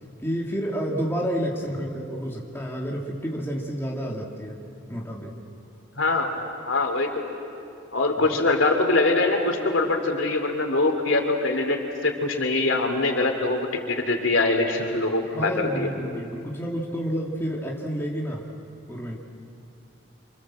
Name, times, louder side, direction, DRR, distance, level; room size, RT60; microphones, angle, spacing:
voice 1, 0.2-4.6 4.9-5.4 8.2-8.4 15.3-18.4 18.9-19.2, equal, 10° left, -2 dB, 2.6 m, -30 dB
voice 2, 6.0-6.3 6.7-7.2 7.9-15.9, left 2 dB, 90° left, 4 dB, 3.1 m, -23 dB
27.5 x 25.5 x 7.6 m, 2.7 s
head